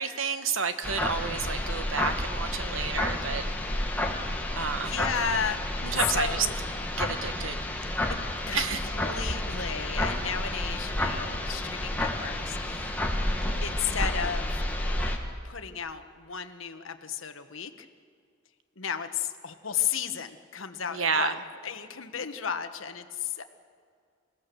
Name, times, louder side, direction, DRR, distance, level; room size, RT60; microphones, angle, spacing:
voice 1, 0.0-3.8 4.5-4.9 5.8-6.5 7.0-7.7 8.5-8.8 20.9-21.3, right 5 dB, 85° right, 10 dB, 1.3 m, -30 dB
sound 1, 0.8-15.2, left 1 dB, 10° left, 2.0 m, -30 dB
voice 2, 4.8-6.5 8.5-8.7 8.9-13.0 13.4-14.6 15.4-17.9 18.8-21.3 21.6-23.4, left 7 dB, 80° left, 9 dB, 1.3 m, -33 dB
28.5 x 17.5 x 7.0 m, 2.2 s
head